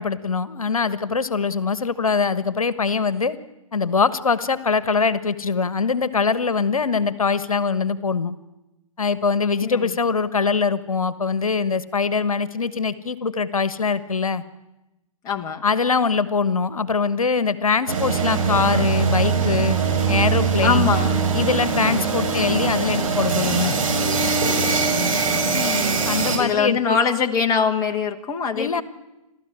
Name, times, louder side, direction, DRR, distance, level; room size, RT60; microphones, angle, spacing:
voice 1, 0.0-3.4 3.7-8.3 9.0-14.4 15.6-19.8 20.1-20.9 21.3-23.8 26.0-27.0 28.5-28.8, left 5 dB, 70° left, 15 dB, 1.3 m, -22 dB
voice 2, 9.6-10.0 15.2-15.6 20.6-21.2 21.8-22.1 25.5-26.1 26.4-28.8, left 6 dB, 20° left, 4 dB, 1.3 m, -23 dB
sound 1, 17.9-26.4, right 5 dB, 70° right, 5.7 m, -22 dB
29.5 x 13.5 x 10.0 m, 0.98 s
figure-of-eight pair, 130°, 18 cm